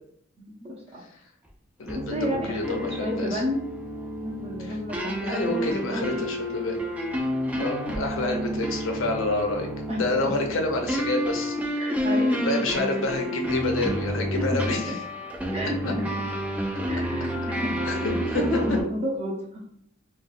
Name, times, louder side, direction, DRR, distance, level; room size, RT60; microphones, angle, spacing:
voice 1, 0.4-1.0 2.1-3.7 4.2-6.0 7.5-7.6 9.9-10.0 11.8-12.4 13.4-13.5 14.4-15.0 15.5-16.3 16.9-17.8 18.1-19.4, left 1 dB, 30° right, -3 dB, 0.7 m, -31 dB
voice 2, 1.8-3.4 4.6-4.8 5.2-6.8 7.6-9.7 9.9-11.8 12.3-14.9 17.9-18.6, left 2 dB, 70° left, 2 dB, 0.6 m, -28 dB
sound 1, 1.9-18.8, equal, 5° right, 0.4 m, -30 dB
3.9 x 2.3 x 2.5 m, 0.68 s
head